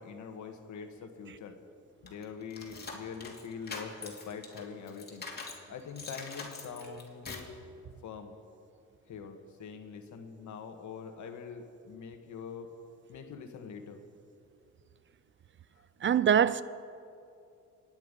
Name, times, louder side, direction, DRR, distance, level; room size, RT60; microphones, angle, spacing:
voice 1, 0.0-1.6 2.0-5.3 5.7-7.5 8.0-8.3 9.1-12.7 13.1-14.0, left 6 dB, 70° left, 1.7 m, -44 dB
sound 1, 2.1-5.6 6.0-7.6, left 3 dB, 35° left, 2.7 m, -44 dB
voice 2, 16.0-16.6, right 8 dB, 40° right, 0.5 m, -23 dB
26.0 x 9.4 x 5.3 m
cardioid pair, 90°, 30 cm